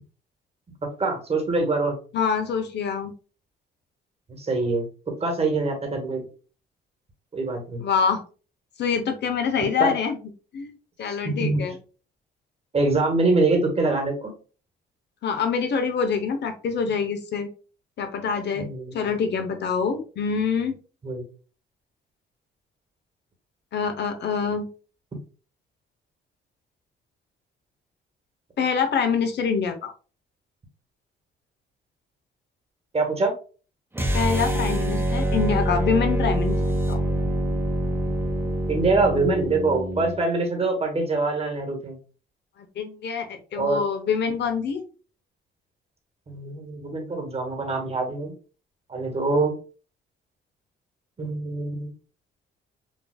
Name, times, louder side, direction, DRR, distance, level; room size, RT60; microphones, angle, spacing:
voice 1, 1.0-1.9 4.3-6.3 7.3-7.8 9.8-9.9 11.1-11.6 12.7-14.3 18.5-18.9 21.0-21.3 32.9-33.3 38.7-42.0 43.6-43.8 46.3-48.3 48.9-49.6 51.2-51.9, right 3 dB, 30° right, 2 dB, 1.5 m, -24 dB
voice 2, 2.1-3.1 7.8-8.2 8.8-10.2 10.5-10.7 11.0-11.8 15.2-17.5 18.0-18.7 18.9-20.7 23.7-24.7 28.6-29.9 34.1-36.6 36.9-37.0 42.8-44.8, left 6 dB, 60° left, 6 dB, 0.8 m, -25 dB
sound 1, 33.9-40.2, right 1 dB, 10° right, 1.1 m, -25 dB
5.2 x 2.6 x 2.2 m, 0.37 s
cardioid pair, 90°, 20 cm